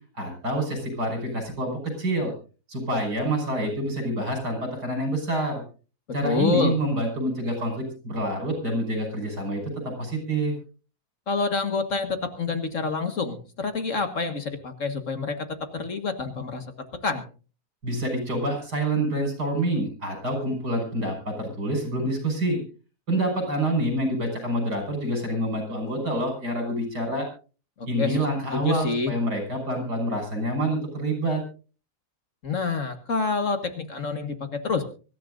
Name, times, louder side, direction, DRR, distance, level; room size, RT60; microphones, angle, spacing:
voice 1, 0.2-2.3 2.7-5.6 6.1-9.6 10.0-10.5 17.8-22.6 23.1-27.2 27.9-31.4, right 1 dB, 80° right, 4 dB, 6.1 m, -27 dB
voice 2, 6.2-6.8 11.3-16.6 17.0-17.2 27.8-28.2 28.5-29.1 32.4-34.8, left 4 dB, 50° left, 8 dB, 1.8 m, -27 dB
24.0 x 13.5 x 2.6 m, 0.35 s
omnidirectional pair, 1.8 m